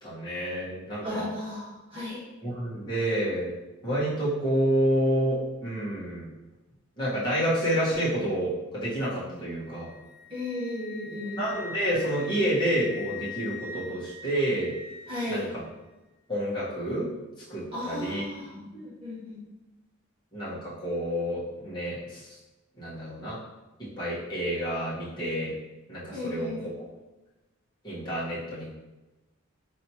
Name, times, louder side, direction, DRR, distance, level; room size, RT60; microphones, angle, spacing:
voice 1, 0.0-1.3 2.4-3.5 3.8-6.3 7.0-9.9 11.4-14.7 15.3-15.6 16.3-17.1 17.5-18.2 20.3-22.4 22.8-23.4 24.0-25.5 25.9-26.5 27.8-28.7, equal, 20° left, -10 dB, 1.5 m, -29 dB
voice 2, 1.0-2.2 10.3-11.4 15.1-15.4 17.7-19.4 26.1-26.6, left 1 dB, 25° right, -9 dB, 1.5 m, -35 dB
Wind instrument woodwind instrument, 9.5-15.5, left 4 dB, 50° left, 0.7 m, -43 dB
4.3 x 3.2 x 2.9 m, 1.1 s
head